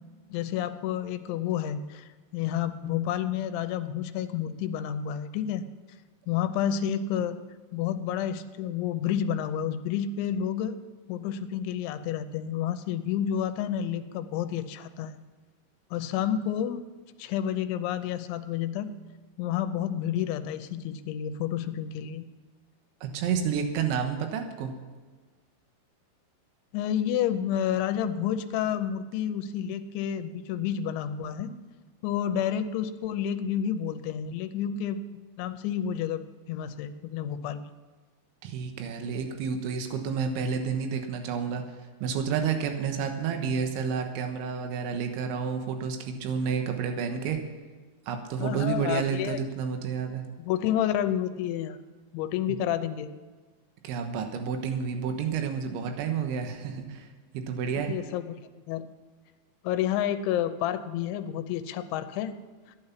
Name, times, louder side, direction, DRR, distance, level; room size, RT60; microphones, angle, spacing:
voice 1, 0.3-5.7 6.3-7.4 7.7-10.8 11.1-15.1 15.9-16.8 17.2-18.9 19.4-22.3 26.7-31.5 32.0-35.0 35.4-36.2 36.5-37.6 48.4-49.4 50.4-51.8 52.1-53.1 57.9-58.4 58.7-58.9 59.6-62.3 62.7-62.8, left 9 dB, 85° left, 10 dB, 3.1 m, -30 dB
voice 2, 23.0-24.7 38.4-41.6 42.0-47.4 48.1-50.2 52.5-52.6 53.8-57.1 57.3-58.0, right 6 dB, 80° right, 5 dB, 3.6 m, -30 dB
15.0 x 11.0 x 5.8 m, 1.4 s
omnidirectional pair, 5.3 m